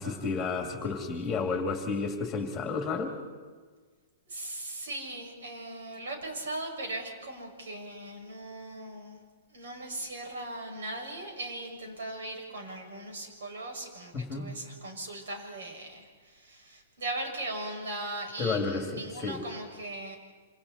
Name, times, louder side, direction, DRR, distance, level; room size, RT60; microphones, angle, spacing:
voice 1, 0.0-3.1 14.1-14.5 18.4-19.4, left 4 dB, 10° left, 3 dB, 2.6 m, -31 dB
voice 2, 4.3-9.2 9.5-20.2, right 2 dB, 75° right, 1 dB, 6.4 m, -39 dB
27.5 x 27.0 x 4.3 m, 1.5 s
hypercardioid pair, 180°, 0 cm